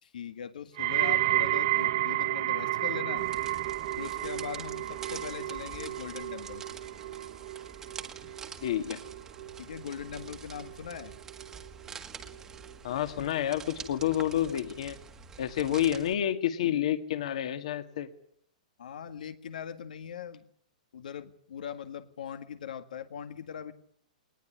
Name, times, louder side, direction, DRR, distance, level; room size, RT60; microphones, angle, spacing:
voice 1, 0.0-3.3 4.0-6.6 9.6-11.1 18.8-20.4 20.9-23.7, left 7 dB, 80° left, 9 dB, 1.9 m, -40 dB
sound 1, 0.8-11.9 12.2-12.7 13.4-13.5, right 16 dB, 40° right, 1.1 m, -32 dB
sound 2, 3.2-16.1, right 6 dB, 10° right, 1.6 m, -46 dB
voice 2, 8.6-9.0 12.8-15.0 15.4-18.1, left 11 dB, 55° left, 9 dB, 2.0 m, -29 dB
21.0 x 20.0 x 9.9 m, 0.67 s
hypercardioid pair, 175°, 4 cm